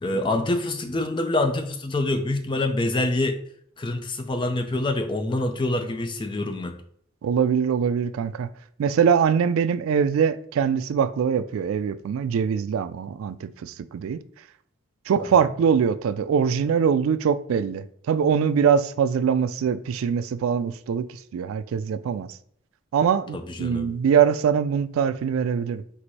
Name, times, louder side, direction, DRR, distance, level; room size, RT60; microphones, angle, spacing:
voice 1, 0.0-3.4 3.8-6.7 15.2-15.3 23.3-23.9, left 2 dB, 25° left, 0.4 m, -26 dB
voice 2, 7.2-8.5 8.8-14.2 15.1-22.4 22.9-25.8, right 7 dB, 80° right, 0.3 m, -23 dB
4.7 x 2.6 x 4.1 m
head